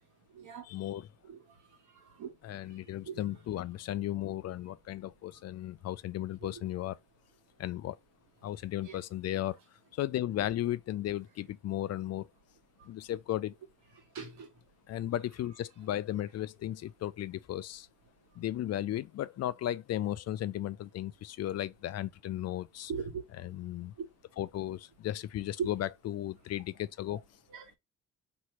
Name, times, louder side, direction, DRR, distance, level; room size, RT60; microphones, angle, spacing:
voice 1, 0.6-1.1 2.4-7.0 7.6-8.0 8.4-9.6 9.9-12.3 12.8-13.5 14.9-17.9 18.4-22.9 23.3-23.9 24.4-27.2, left 13 dB, 55° left, 0.4 m, -35 dB
voice 2, 2.0-2.3 3.1-3.2 8.9-9.0 14.1-14.5 22.9-23.2 24.0-24.1 25.6-25.7 27.5-27.6, right 6 dB, 80° right, 1.6 m, -38 dB
3.1 x 3.0 x 4.4 m
cardioid pair, 90°, 30 cm